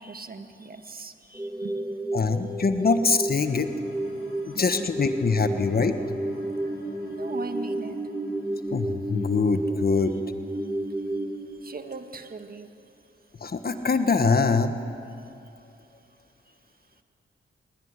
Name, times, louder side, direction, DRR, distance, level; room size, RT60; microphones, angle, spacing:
voice 1, 0.0-2.5 4.4-4.9 5.5-5.6 6.3-6.4 6.6-6.7 7.0-8.0 9.7-10.1 10.6-12.7 15.2-15.3 16.5-16.6, right 4 dB, 45° right, 7 dB, 1.9 m, -41 dB
sound 1, 1.3-11.3, right 1 dB, 10° right, 2.3 m, -32 dB
voice 2, 2.1-3.7 4.5-6.0 8.7-10.1 13.4-14.8, left 4 dB, 45° left, 9 dB, 1.3 m, -23 dB
sound 2, 3.4-10.4, left 2 dB, 85° left, 8.0 m, -51 dB
24.0 x 22.5 x 9.8 m, 2.7 s
cardioid pair, 80°, 21 cm